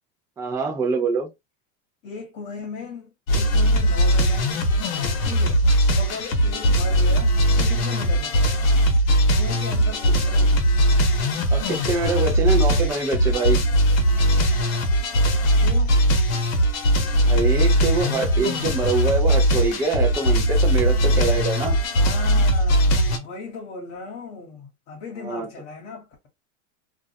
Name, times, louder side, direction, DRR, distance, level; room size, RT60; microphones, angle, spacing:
voice 1, 0.4-1.3 11.5-13.6 17.3-21.8 25.2-25.5, right 4 dB, 10° right, 0.3 m, -24 dB
voice 2, 2.0-4.5 4.8-5.7 6.0-8.6 9.3-10.7 15.6-16.0 22.0-26.3, left 4 dB, 45° left, 1.1 m, -37 dB
sound 1, 3.3-23.2, equal, 90° left, 0.8 m, -20 dB
2.4 x 2.0 x 2.5 m
supercardioid pair, 130°, 40 cm